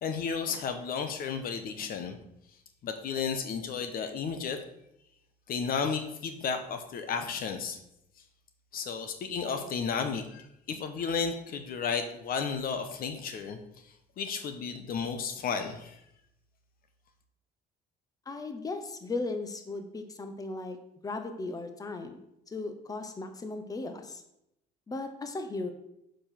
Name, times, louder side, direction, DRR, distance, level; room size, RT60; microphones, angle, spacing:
voice 1, 0.0-2.2 2.8-4.6 5.5-7.8 8.7-13.6 14.2-16.0, left 6 dB, 60° left, 8 dB, 1.0 m, -33 dB
voice 2, 18.3-20.8 21.0-24.2 24.9-25.7, left 3 dB, 20° left, 7 dB, 0.9 m, -37 dB
6.9 x 5.1 x 5.8 m, 0.81 s
cardioid pair, 110°, 17 cm